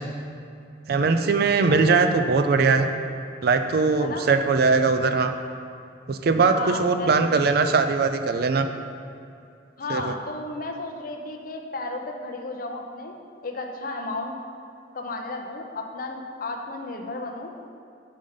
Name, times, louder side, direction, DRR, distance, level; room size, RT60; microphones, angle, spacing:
voice 1, 0.9-2.9 3.4-5.3 6.1-8.7 9.9-10.1, right 4 dB, 55° right, 8 dB, 0.4 m, -20 dB
voice 2, 4.0-4.3 6.5-7.4 9.8-13.1 13.4-14.4 14.9-17.5, left 2 dB, 50° left, 3 dB, 0.6 m, -33 dB
5.3 x 5.3 x 5.0 m, 2.5 s
head